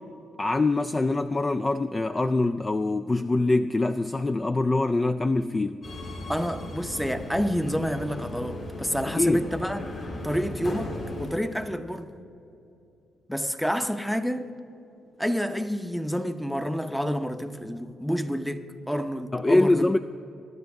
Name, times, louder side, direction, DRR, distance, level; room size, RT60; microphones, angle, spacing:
voice 1, 0.4-5.9 9.1-9.4 19.3-20.0, left 2 dB, 25° left, 0.3 m, -24 dB
Subway metro underground, 5.8-11.3, left 2 dB, 50° left, 3.6 m, -36 dB
voice 2, 6.3-9.8 10.2-12.1 13.3-14.5 15.2-19.9, equal, ahead, 0.8 m, -29 dB
23.0 x 11.0 x 3.5 m
cardioid pair, 90°, 0 cm